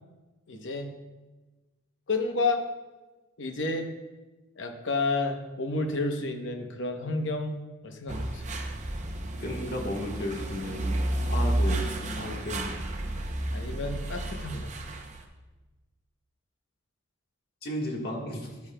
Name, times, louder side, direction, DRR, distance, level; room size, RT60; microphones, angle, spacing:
voice 1, 0.5-1.0 2.1-2.6 3.4-3.9 4.6-8.5 13.5-14.7, left 3 dB, 65° left, 4 dB, 0.9 m, -30 dB
sound 1, 8.1-15.2, right 1 dB, 35° right, 0.6 m, -31 dB
voice 2, 9.4-11.9 12.2-12.7 17.6-18.6, left 1 dB, 50° left, -1 dB, 1.4 m, -34 dB
10.5 x 8.5 x 2.2 m, 1.2 s
head